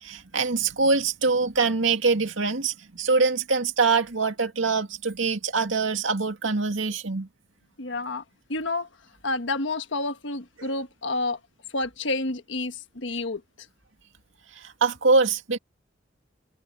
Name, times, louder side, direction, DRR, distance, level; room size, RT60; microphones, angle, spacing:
voice 1, 0.0-7.3 14.6-15.6, right 4 dB, 85° right, 2.2 m, -24 dB
voice 2, 7.8-8.2 8.5-8.9 9.2-11.4 11.7-13.7, left 2 dB, 70° left, 1.5 m, -29 dB
head